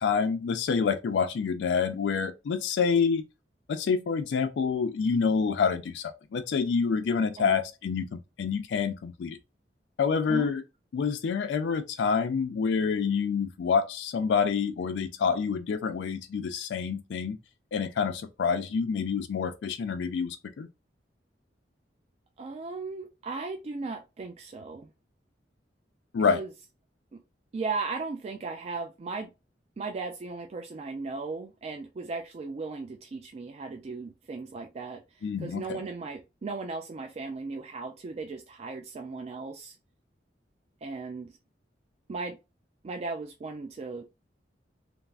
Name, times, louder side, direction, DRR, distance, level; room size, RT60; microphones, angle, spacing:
voice 1, 0.0-3.2 3.7-9.4 10.0-10.6 10.9-17.4 17.7-20.7 26.1-26.4 35.2-35.8, left 5 dB, 75° left, 0.4 m, -27 dB
voice 2, 22.4-24.9 26.2-26.5 27.1-27.2 27.5-29.3 29.8-39.7 40.8-41.4 42.1-42.4 42.8-44.0, right 4 dB, 35° right, 0.3 m, -36 dB
3.3 x 2.0 x 2.4 m
head